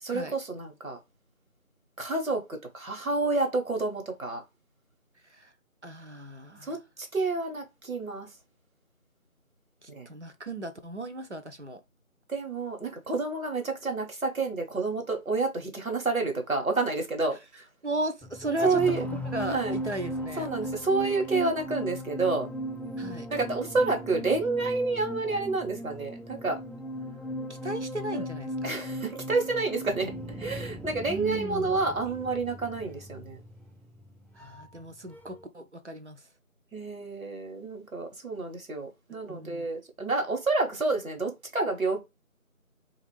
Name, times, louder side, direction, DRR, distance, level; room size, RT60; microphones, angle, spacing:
voice 1, 0.0-1.0 2.0-4.4 6.6-8.3 9.9-10.1 12.3-17.4 18.6-19.0 19.5-19.8 20.4-22.5 23.3-26.6 28.1-28.2 28.6-30.1 30.4-33.4 36.7-42.0, right 3 dB, 75° right, 1.2 m, -29 dB
voice 2, 5.8-6.8 9.8-11.8 17.8-19.1 19.3-20.5 23.0-23.3 27.6-28.7 31.1-31.8 34.4-36.2 39.1-39.7, right 1 dB, 55° right, 0.6 m, -36 dB
sound 1, 18.2-34.9 35.1-35.4, equal, 5° left, 0.3 m, -37 dB
2.9 x 2.4 x 3.1 m
figure-of-eight pair, 175°, 42 cm